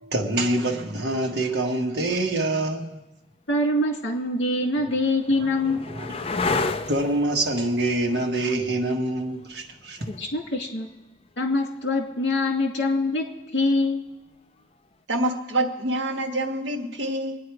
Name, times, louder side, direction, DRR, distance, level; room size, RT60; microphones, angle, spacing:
voice 1, 0.0-3.0 5.4-6.1 6.5-10.0, right 1 dB, 60° right, 1 dB, 1.7 m, -26 dB
sound 1, 3.2-3.3 4.1-11.8 14.1-14.6, left 3 dB, 30° left, 0.6 m, -33 dB
voice 2, 3.5-5.8 10.2-10.9 11.4-13.2 13.5-14.0, left 2 dB, 70° left, 2 dB, 2.3 m, -24 dB
voice 3, 15.1-17.4, right 1 dB, 80° right, 4 dB, 1.5 m, -26 dB
23.0 x 9.6 x 4.7 m, 1.0 s
head